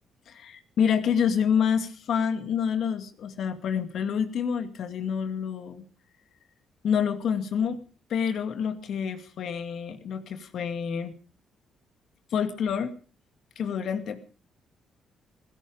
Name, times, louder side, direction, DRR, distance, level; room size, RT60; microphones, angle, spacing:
voice 1, 0.3-5.8 6.8-7.8 8.1-11.1 12.3-12.9 13.6-14.2, left 7 dB, 70° left, 8 dB, 2.3 m, -27 dB
16.5 x 16.5 x 5.1 m, 0.39 s
cardioid pair, 90°, 0 cm